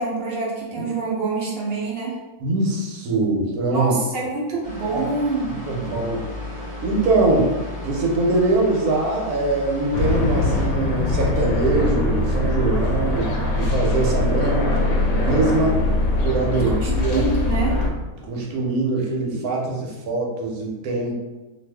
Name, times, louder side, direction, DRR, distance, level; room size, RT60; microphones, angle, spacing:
voice 1, 0.0-2.2 3.7-5.5 16.5-17.8, right 3 dB, 55° right, -4 dB, 0.7 m, -26 dB
voice 2, 2.4-3.9 4.9-5.0 5.7-6.2 6.8-7.5 7.8-13.3 13.5-14.8 15.2-15.8 16.2-17.2 18.2-21.1, right 2 dB, 75° right, -1 dB, 1.2 m, -22 dB
sound 1, 4.6-10.7, left 1 dB, 5° left, 0.7 m, -34 dB
sound 2, 9.9-17.9, left 2 dB, 70° left, 1.0 m, -22 dB
2.6 x 2.4 x 3.3 m, 1.1 s
omnidirectional pair, 1.6 m